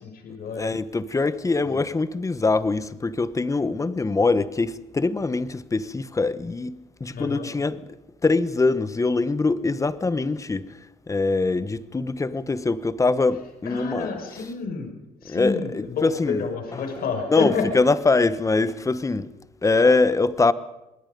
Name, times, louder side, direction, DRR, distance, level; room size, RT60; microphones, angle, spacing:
voice 1, 0.0-0.7 1.6-1.8 7.1-7.5 13.6-14.9 15.2-17.7, left 5 dB, 60° left, 6.3 m, -29 dB
voice 2, 0.6-7.8 8.2-10.7 11.1-14.1 15.3-16.4 17.3-19.3 19.6-20.5, left 3 dB, 20° left, 1.2 m, -23 dB
26.0 x 21.0 x 5.4 m
cardioid pair, 110°, 17 cm